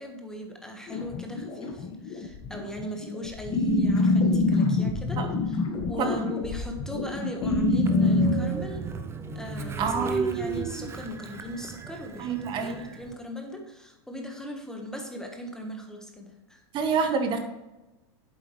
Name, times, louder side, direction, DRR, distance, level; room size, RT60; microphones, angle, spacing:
voice 1, 0.0-5.6 5.9-8.9 9.3-16.6, left 1 dB, 5° left, 3 dB, 1.3 m, -39 dB
sound 1, 0.9-8.4, left 2 dB, 35° left, 1.8 m, -25 dB
Train, 7.9-13.1, right 4 dB, 20° right, 0.7 m, -33 dB
voice 2, 9.8-10.3 12.2-12.8 16.7-17.4, right 5 dB, 35° right, 7 dB, 1.2 m, -27 dB
8.4 x 7.8 x 3.2 m, 1.0 s
hypercardioid pair, 115°, 14 cm